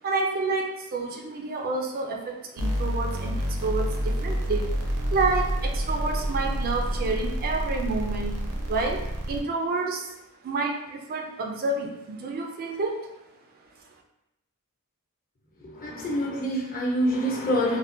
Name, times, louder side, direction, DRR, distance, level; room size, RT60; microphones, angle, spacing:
voice 1, 0.0-10.2 10.4-13.1, right 3 dB, 40° right, 2 dB, 0.3 m, -29 dB
sound 1, 2.6-9.4, equal, 80° right, 0.6 m, -28 dB
voice 2, 15.6-17.8, equal, 40° left, -4 dB, 0.7 m, -26 dB
3.3 x 2.1 x 2.6 m, 0.91 s
head